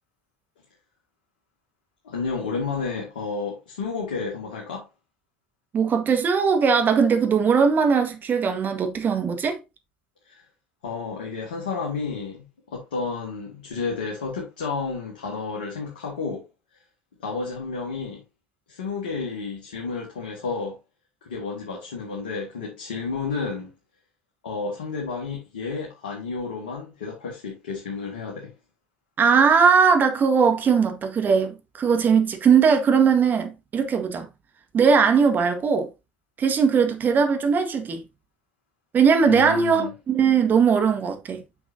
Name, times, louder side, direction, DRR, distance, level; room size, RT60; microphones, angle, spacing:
voice 1, 2.0-4.9 10.3-10.4 10.8-16.4 17.2-18.2 18.7-20.8 21.2-23.7 24.4-28.5 39.3-39.9, left 4 dB, 75° left, 2.1 m, -31 dB
voice 2, 5.7-9.6 29.2-34.3 34.7-35.9 36.4-38.0 38.9-41.4, right 6 dB, 40° right, 1.8 m, -20 dB
9.3 x 5.9 x 2.8 m
figure-of-eight pair, 60°, 5 cm